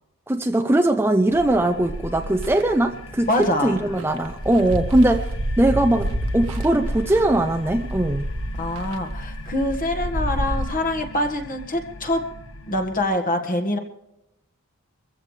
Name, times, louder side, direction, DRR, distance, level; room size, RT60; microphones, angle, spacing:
voice 1, 0.3-3.3 3.6-5.3 5.6-8.3, right 1 dB, 10° right, 4 dB, 0.6 m, -20 dB
sound 1, 1.3-13.1, left 1 dB, 60° left, 1.5 m, -39 dB
sound 2, 1.4-2.6 3.3-3.4 3.8-10.6, equal, 75° right, 1.4 m, -29 dB
voice 2, 3.3-3.7 8.6-12.2 12.7-13.8, left 1 dB, 40° left, 6 dB, 1.7 m, -24 dB
23.5 x 15.0 x 3.3 m, 0.87 s
head